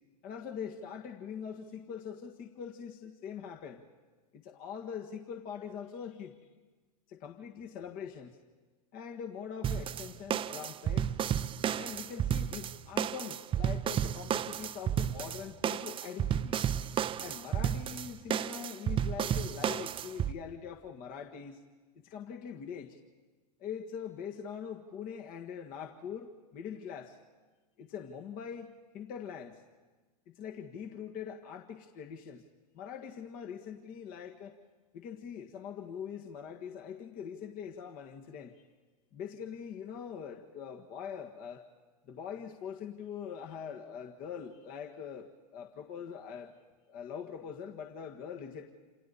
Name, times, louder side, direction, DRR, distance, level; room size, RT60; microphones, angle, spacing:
voice 1, 0.2-3.8 4.3-6.4 7.1-8.4 8.9-11.1 11.8-16.6 17.2-21.6 22.0-23.0 23.6-27.2 27.8-29.6 30.3-32.4 32.7-34.5 34.9-38.6 39.1-41.7 42.1-46.5 46.9-48.7, left 7 dB, 45° left, 2 dB, 1.7 m, -43 dB
sound 1, 9.6-20.3, right 9 dB, 25° right, 0.6 m, -32 dB
28.0 x 28.0 x 4.2 m, 1.3 s
hypercardioid pair, 105°, 20 cm